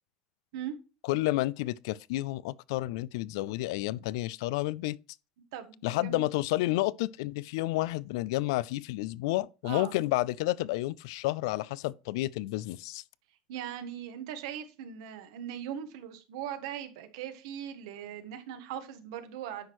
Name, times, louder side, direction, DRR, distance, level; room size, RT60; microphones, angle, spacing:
voice 1, 1.0-5.0 5.8-13.0, left 18 dB, 90° left, 0.3 m, -30 dB
voice 2, 5.5-6.2 9.6-9.9 13.5-19.7, right 10 dB, 90° right, 1.3 m, -39 dB
9.6 x 6.1 x 3.0 m
cardioid pair, 145°, 2 cm